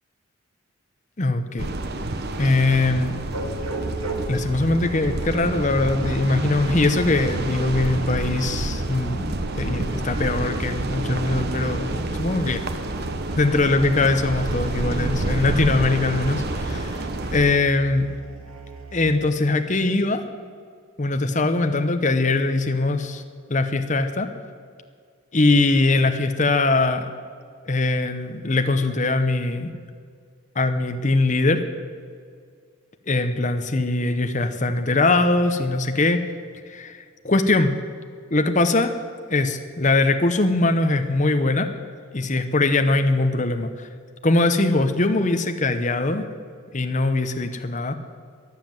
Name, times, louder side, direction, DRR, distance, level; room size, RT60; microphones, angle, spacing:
voice 1, 1.2-1.7 2.4-3.2 4.3-12.7 13.4-17.0 17.3-18.1 18.9-20.3 21.0-23.2 23.5-24.3 25.3-27.1 27.6-29.7 30.5-31.6 33.1-36.2 36.7-37.7 38.3-38.9 39.3-41.7 42.1-43.9 44.2-46.3 46.7-47.9, left 2 dB, 35° left, 7 dB, 0.9 m, -21 dB
sound 1, 1.6-17.6, right 2 dB, 50° right, 0.9 m, -29 dB
sound 2, 3.3-19.1, right 2 dB, 90° right, 2.2 m, -35 dB
22.5 x 7.6 x 7.6 m, 2.1 s
head